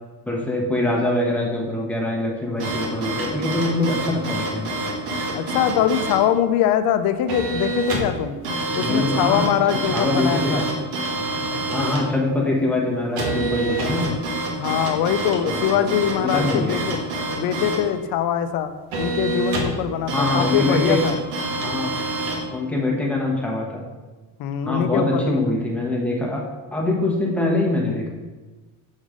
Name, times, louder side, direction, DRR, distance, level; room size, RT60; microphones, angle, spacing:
voice 1, 0.3-4.7 8.7-9.5 9.9-10.7 11.7-14.1 15.4-15.9 16.2-16.8 20.1-21.0 21.6-21.9 22.5-23.8 24.6-26.4 26.7-28.1, left 2 dB, 5° left, -2 dB, 0.9 m, -23 dB
sound 1, 2.6-6.2 7.3-8.2 8.4-12.1 13.2-17.9 18.9-19.8 20.1-22.4, right 2 dB, 85° right, 1.5 m, -26 dB
voice 2, 5.3-8.4 8.8-10.7 11.5-11.6 14.6-17.0 17.3-18.7 19.0-21.2 24.4-25.5, left 9 dB, 60° left, 10 dB, 0.6 m, -22 dB
6.3 x 3.9 x 4.9 m, 1.3 s
cardioid pair, 155°, 40 cm